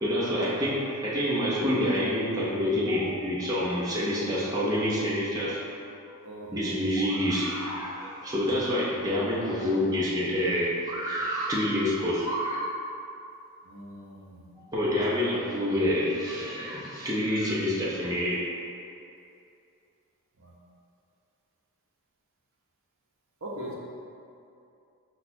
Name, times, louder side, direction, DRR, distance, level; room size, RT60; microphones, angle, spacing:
voice 1, 0.0-5.6 6.5-12.7 14.6-18.5, equal, 15° right, -7 dB, 0.6 m, -27 dB
voice 2, 6.2-7.0 13.6-14.5 20.4-20.5 23.4-23.8, equal, 60° right, -3 dB, 0.7 m, -41 dB
5.5 x 2.3 x 4.2 m, 2.6 s
head